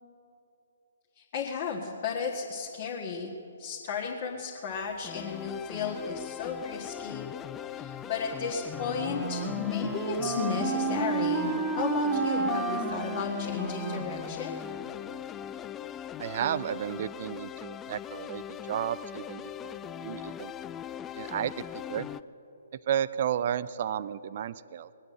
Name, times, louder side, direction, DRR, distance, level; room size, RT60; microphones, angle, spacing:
voice 1, 1.1-3.3 3.6-7.2 7.6-14.6, left 5 dB, 40° left, -2 dB, 1.7 m, -34 dB
sound 1, 5.0-22.2, left 9 dB, 15° left, 0.3 m, -40 dB
Wind instrument woodwind instrument, 8.7-14.8, right 3 dB, 10° right, 1.5 m, -31 dB
voice 2, 16.2-20.5 21.1-22.1 22.9-24.9, right 10 dB, 45° right, 16 dB, 0.5 m, -33 dB
21.5 x 8.5 x 7.7 m, 3.0 s
figure-of-eight pair, 130°, 0 cm